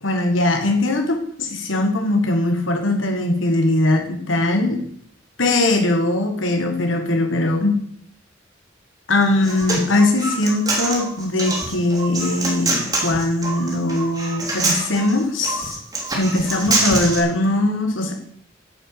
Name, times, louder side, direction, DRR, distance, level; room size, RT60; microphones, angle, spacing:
voice 1, 0.0-4.9 5.4-7.8 9.1-15.8 16.1-18.1, left 2 dB, 85° left, 4 dB, 1.7 m, -20 dB
Human voice, 9.2-17.2, right 2 dB, 20° right, 3.2 m, -25 dB
10.0 x 6.8 x 8.2 m, 0.65 s
head